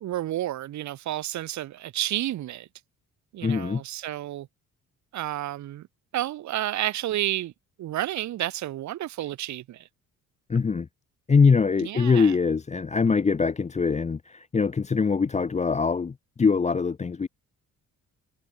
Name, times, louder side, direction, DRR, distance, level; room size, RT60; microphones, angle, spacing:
voice 1, 0.0-2.7 3.3-4.5 5.1-5.9 6.1-7.5 7.8-9.9 11.8-12.3, right 13 dB, 70° right, 1.0 m, -31 dB
voice 2, 3.4-3.8 10.5-10.9 11.3-17.3, left 5 dB, 25° left, 0.7 m, -23 dB
cardioid pair, 90°, 30 cm